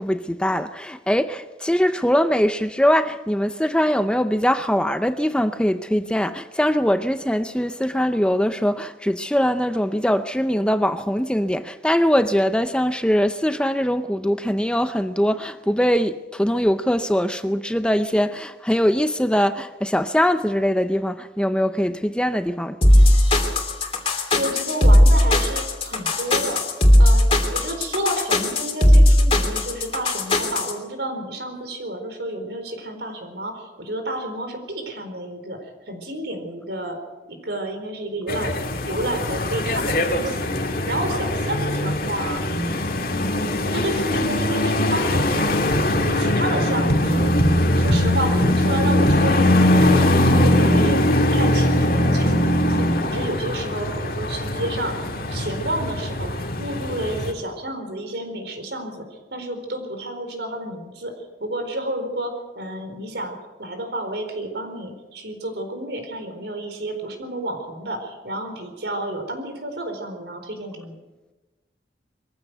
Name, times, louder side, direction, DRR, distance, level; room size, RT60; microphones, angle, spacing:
voice 1, 0.0-22.8, equal, 5° left, 0.6 m, -22 dB
sound 1, 22.8-30.7, left 1 dB, 30° left, 3.2 m, -16 dB
voice 2, 24.3-26.6 27.0-37.0 37.3-40.5 40.8-42.4 43.1-47.3 47.7-50.1 50.4-61.1 61.4-71.0, right 1 dB, 70° right, 4.4 m, -30 dB
sound 2, 38.3-57.3, left 1 dB, 50° left, 2.1 m, -21 dB
22.5 x 15.5 x 8.0 m
head